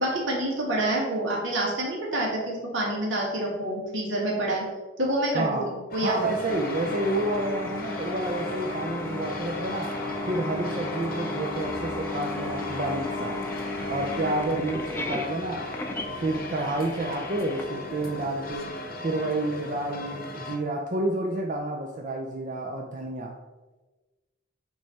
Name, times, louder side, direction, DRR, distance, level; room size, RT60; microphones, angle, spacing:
voice 1, 0.0-4.6 5.0-6.3, right 1 dB, 80° right, -3 dB, 2.0 m, -27 dB
voice 2, 5.3-5.7 6.0-10.0 10.3-13.4 13.9-15.6 16.2-18.7 19.0-23.4, right 2 dB, 40° right, 1 dB, 0.5 m, -29 dB
sound 1, 5.9-20.6, left 2 dB, 50° left, 0.9 m, -37 dB
sound 2, 6.5-18.5, left 2 dB, 10° left, 0.6 m, -35 dB
9.3 x 3.2 x 4.1 m, 1.2 s
head